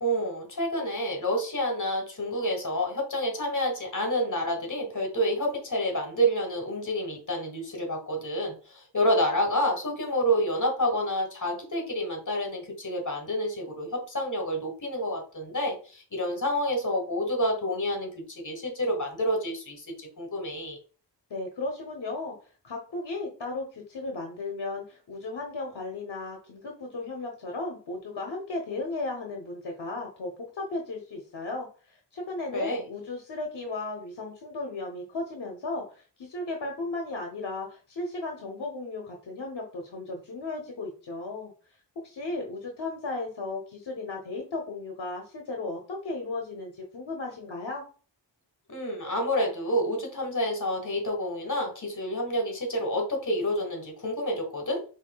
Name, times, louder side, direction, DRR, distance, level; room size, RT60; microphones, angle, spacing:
voice 1, 0.0-20.8 32.5-32.8 48.7-54.8, equal, 45° left, 2 dB, 1.2 m, -28 dB
voice 2, 21.3-22.3 22.6-41.5 42.0-47.8, left 2 dB, 65° left, 1 dB, 0.8 m, -35 dB
5.6 x 2.7 x 2.2 m, 0.39 s
wide cardioid pair, 85°, 43 cm